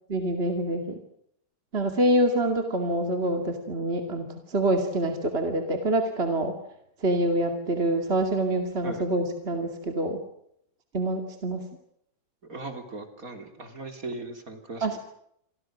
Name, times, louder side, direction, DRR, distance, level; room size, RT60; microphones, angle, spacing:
voice 1, 0.1-1.0 1.7-6.5 7.0-10.2 10.9-11.6 14.8-15.0, right 1 dB, 35° right, 4 dB, 2.7 m, -26 dB
voice 2, 12.5-15.0, right 2 dB, 55° right, 6 dB, 4.0 m, -38 dB
29.0 x 24.5 x 6.4 m, 0.73 s
omnidirectional pair, 1.8 m